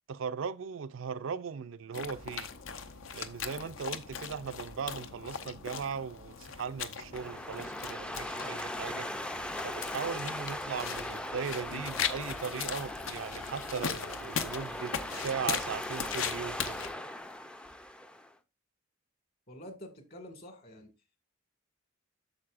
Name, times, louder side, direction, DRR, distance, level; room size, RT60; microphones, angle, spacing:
voice 1, 0.1-2.5 3.1-9.1 9.6-16.8, right 6 dB, 70° right, 0.4 m, -38 dB
sound 1, 1.9-16.9, left 7 dB, 70° left, 0.7 m, -39 dB
sound 2, 7.1-18.3, left 1 dB, 5° left, 0.4 m, -39 dB
voice 2, 19.5-20.9, left 1 dB, 50° left, 2.0 m, -47 dB
8.7 x 6.7 x 2.5 m
head